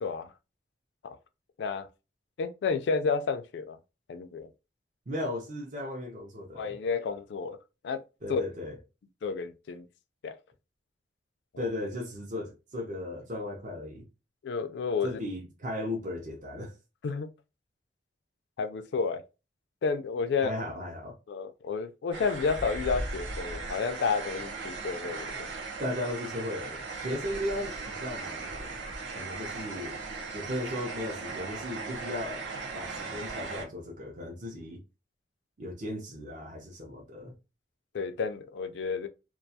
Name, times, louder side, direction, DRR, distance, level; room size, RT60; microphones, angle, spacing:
voice 1, 0.0-0.3 1.0-1.2 1.6-1.9 2.4-3.8 4.1-4.5 6.5-7.6 7.8-8.0 8.3-8.4 9.2-9.9 10.2-10.4 11.5-11.7 14.4-15.2 17.0-17.3 18.6-19.2 19.8-20.6 21.3-25.5 37.9-39.1, left 5 dB, 70° left, 0.3 m, -31 dB
voice 2, 5.1-6.7 8.2-8.8 11.6-14.0 15.0-16.8 20.4-21.1 25.8-28.7 29.1-30.0 30.3-34.8 35.6-37.3, left 1 dB, 40° right, 0.5 m, -36 dB
sound 1, 22.1-33.7, right 3 dB, 85° right, 0.7 m, -38 dB
2.3 x 2.2 x 2.6 m
head